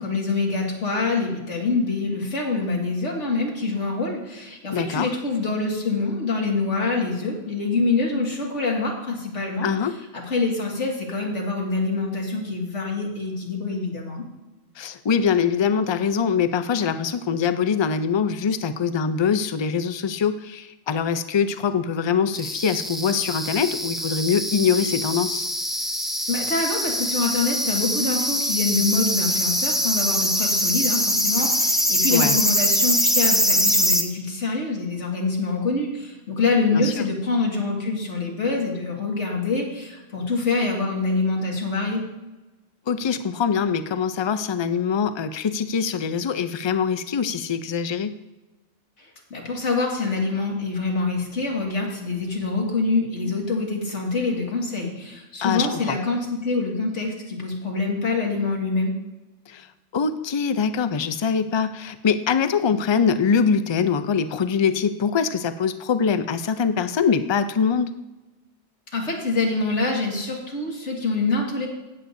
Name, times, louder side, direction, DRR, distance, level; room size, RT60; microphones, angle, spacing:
voice 1, 0.0-9.7 10.1-14.2 26.3-42.0 49.3-58.9 68.9-71.7, left 3 dB, 90° left, -1 dB, 2.4 m, -25 dB
voice 2, 4.7-5.1 9.6-10.0 14.8-25.5 32.1-32.4 36.7-37.0 42.9-48.1 55.4-56.0 59.5-59.7 59.9-67.9, left 6 dB, 45° left, 11 dB, 0.3 m, -23 dB
sound 1, 22.3-34.0, equal, ahead, 0.7 m, -23 dB
16.0 x 8.1 x 2.7 m, 1.1 s
omnidirectional pair, 1.2 m